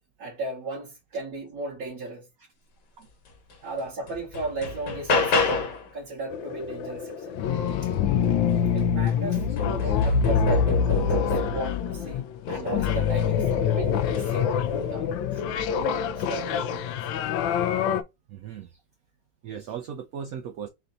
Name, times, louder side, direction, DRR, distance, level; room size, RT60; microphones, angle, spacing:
voice 1, 0.2-2.2 3.6-5.5 5.9-7.4 7.8-7.9 8.7-17.0, right 2 dB, 50° right, 1.9 m, -36 dB
sound 1, 3.5-3.6 4.1-5.9 8.3-8.4 8.8-11.8 12.5-13.0 14.0-14.3, left 4 dB, 65° left, 1.7 m, -28 dB
sound 2, 6.3-18.0, left 7 dB, 80° left, 1.3 m, -25 dB
voice 2, 9.3-10.1 13.4-13.7 18.3-18.7 19.4-20.7, right 8 dB, 75° right, 0.8 m, -38 dB
4.3 x 2.7 x 3.8 m
omnidirectional pair, 2.1 m